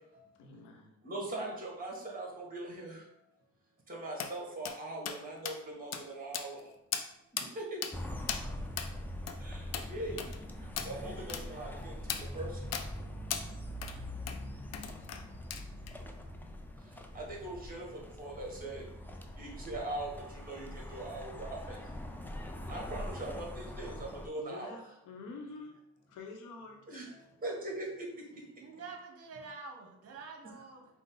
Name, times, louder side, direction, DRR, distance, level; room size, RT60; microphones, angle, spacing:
voice 1, 0.4-1.0 24.4-25.8 26.1-26.8, left 3 dB, 85° left, 2 dB, 0.9 m, -47 dB
voice 2, 1.0-3.0 3.9-6.6 7.3-7.8 9.4-10.2 10.8-12.5 17.1-18.8 19.4-20.1 20.3-21.8 22.7-24.8 26.9-27.1 27.4-27.9, right 2 dB, 30° right, -1 dB, 1.5 m, -41 dB
sound 1, 4.2-4.3 4.7-4.8 5.1-5.2 5.5-5.6 5.9-6.0 6.3-6.6 6.9-7.1 7.4-7.5 7.8-7.9 8.3-8.4 8.8-8.9 9.3-9.4 9.7-9.9 10.2-10.4 10.8-10.9 11.3-11.4 12.1-12.2 12.7-12.9 13.3-13.5 13.8-14.0 14.3-14.4 14.7-15.2 15.5-15.9, left 8 dB, 60° left, 0.5 m, -37 dB
sound 2, 7.9-24.3, left 1 dB, 5° left, 0.4 m, -43 dB
voice 3, 28.6-30.9, right 4 dB, 50° right, 3 dB, 0.9 m, -47 dB
5.1 x 2.1 x 3.8 m, 0.82 s
cardioid pair, 90°, 30 cm